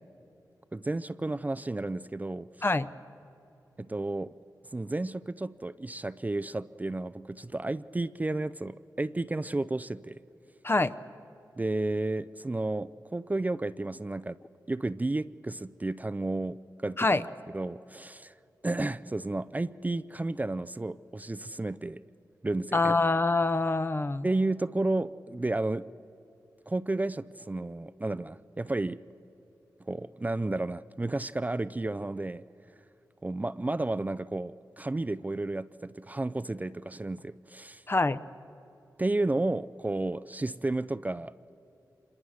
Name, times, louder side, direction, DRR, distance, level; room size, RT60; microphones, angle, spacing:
voice 1, 0.7-2.5 3.8-4.3 4.7-10.2 11.6-14.4 14.7-17.2 17.5-18.3 18.6-22.0 22.4-22.8 24.2-25.9 26.7-29.0 29.9-32.4 33.2-37.8 39.0-41.3, right 2 dB, 20° right, 0.4 m, -32 dB
voice 2, 22.7-24.3 37.9-38.2, left 3 dB, 30° left, 0.7 m, -25 dB
25.5 x 21.5 x 6.4 m
cardioid pair, 50°, 7 cm